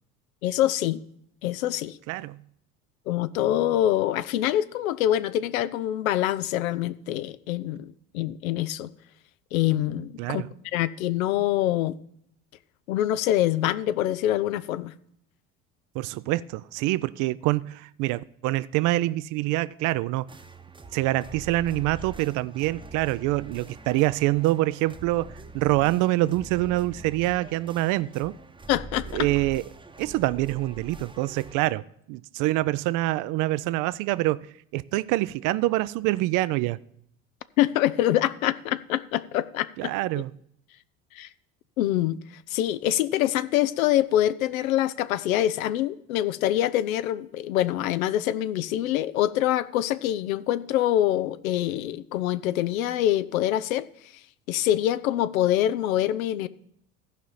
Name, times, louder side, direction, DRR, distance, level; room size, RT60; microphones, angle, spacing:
voice 1, 0.4-1.0 1.4-2.0 3.1-8.9 9.5-10.4 10.7-12.0 12.9-14.9 28.7-29.3 37.6-39.9 41.2-41.3 41.8-42.2 42.5-53.9 54.5-56.5, left 13 dB, 75° left, 0.6 m, -25 dB
voice 2, 2.1-2.4 10.2-10.5 15.9-20.3 20.9-28.3 29.1-29.6 30.0-31.8 32.1-34.5 34.7-36.8 39.8-40.3, right 17 dB, 50° right, 0.5 m, -25 dB
sound 1, 20.3-31.5, right 3 dB, 10° right, 0.9 m, -44 dB
14.5 x 5.1 x 5.6 m
hypercardioid pair, 65°, 42 cm